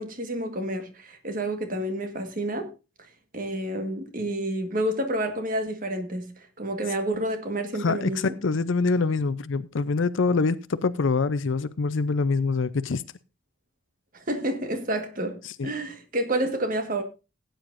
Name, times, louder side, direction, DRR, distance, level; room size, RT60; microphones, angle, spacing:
voice 1, 0.0-2.7 3.3-8.3 14.1-17.0, right 1 dB, 40° right, 1.6 m, -29 dB
voice 2, 7.8-13.0 15.4-15.7, left 4 dB, 70° left, 0.5 m, -25 dB
17.5 x 9.1 x 2.6 m
head